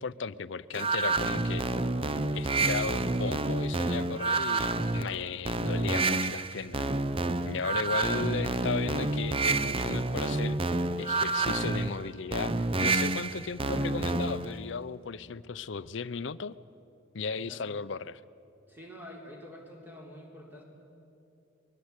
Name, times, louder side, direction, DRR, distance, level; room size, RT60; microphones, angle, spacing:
voice 1, 0.0-1.6 2.3-6.9 7.4-10.6 11.0-16.5 17.1-18.2, left 5 dB, 65° left, 16 dB, 0.6 m, -35 dB
sound 1, 0.7-14.5, right 3 dB, 30° right, 0.6 m, -29 dB
voice 2, 18.7-20.6, equal, 10° right, -1 dB, 3.8 m, -48 dB
24.0 x 21.5 x 8.2 m, 2.7 s
head